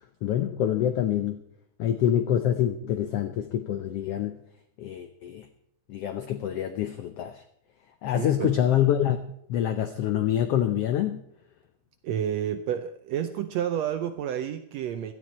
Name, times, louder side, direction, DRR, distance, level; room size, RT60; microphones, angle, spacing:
voice 1, 0.2-1.4 1.8-4.4 4.8-5.5 5.9-7.3 8.0-9.2 9.5-11.2, left 10 dB, 90° left, 9 dB, 1.3 m, -26 dB
voice 2, 8.1-8.6 12.0-15.1, right 9 dB, 75° right, 9 dB, 1.6 m, -30 dB
17.0 x 12.5 x 4.3 m, 0.74 s
omnidirectional pair, 3.7 m